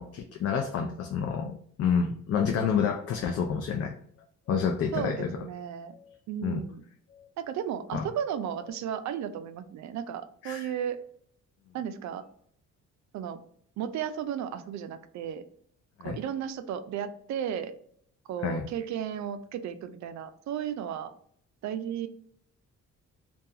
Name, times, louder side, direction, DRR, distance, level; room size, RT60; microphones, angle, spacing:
voice 1, 0.0-3.9 4.5-5.3 5.9-6.2 6.4-6.6 7.1-7.3 7.9-8.1 10.4-10.7 16.0-16.2 18.4-18.7, left 6 dB, 55° left, 3 dB, 0.4 m, -29 dB
voice 2, 4.9-5.9 6.3-6.8 7.4-11.0 11.7-12.2 13.1-13.4 13.8-15.4 16.0-17.7 18.3-21.1 21.6-22.1, right 9 dB, 65° right, 10 dB, 0.4 m, -34 dB
2.3 x 2.3 x 2.6 m, 0.64 s
cardioid pair, 90°, 30 cm